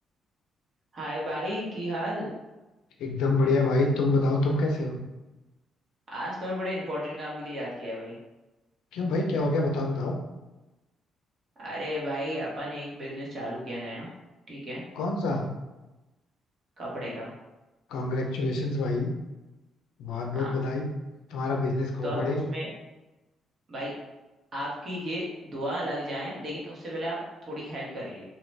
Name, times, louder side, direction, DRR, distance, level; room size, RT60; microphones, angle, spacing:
voice 1, 0.9-2.3 6.1-8.2 11.6-14.1 14.5-14.8 16.8-17.3 20.3-20.5 22.0-22.7 23.7-23.9 24.5-28.2, equal, 45° right, -5 dB, 1.3 m, -34 dB
voice 2, 3.0-5.0 8.9-10.2 15.0-15.5 17.9-19.1 20.0-20.9 21.3-22.4, left 2 dB, 90° left, 1 dB, 0.5 m, -26 dB
2.9 x 2.3 x 3.2 m, 1.1 s
cardioid pair, 90°, 0 cm